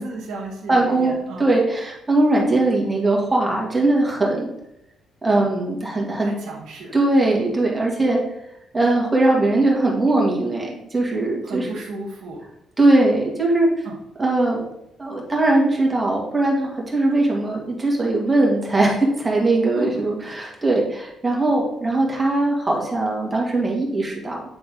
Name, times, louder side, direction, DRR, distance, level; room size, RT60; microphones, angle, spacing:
voice 1, 0.0-1.5 5.3-5.5 6.2-6.9 11.4-12.4 13.8-14.0 19.7-20.0, right 2 dB, 75° right, -6 dB, 1.4 m, -33 dB
voice 2, 0.7-1.1 1.4-4.5 5.2-6.3 6.9-8.2 8.7-11.7 12.8-13.9 14.2-14.6 15.0-24.4, right 2 dB, 20° right, -2 dB, 2.0 m, -20 dB
8.8 x 3.9 x 3.6 m, 0.83 s
cardioid pair, 90°, 0 cm